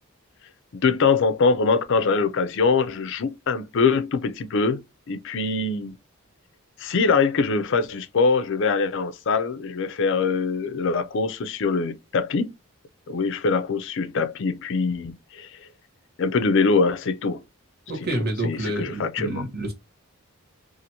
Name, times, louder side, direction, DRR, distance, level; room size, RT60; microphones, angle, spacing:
voice 1, 0.7-4.8 5.1-5.9 6.8-12.5 13.1-15.5 16.2-17.4 18.1-19.4, left 4 dB, 55° left, 0.4 m, -23 dB
voice 2, 17.9-19.7, right 1 dB, 45° right, 1.1 m, -28 dB
2.9 x 2.5 x 2.7 m
head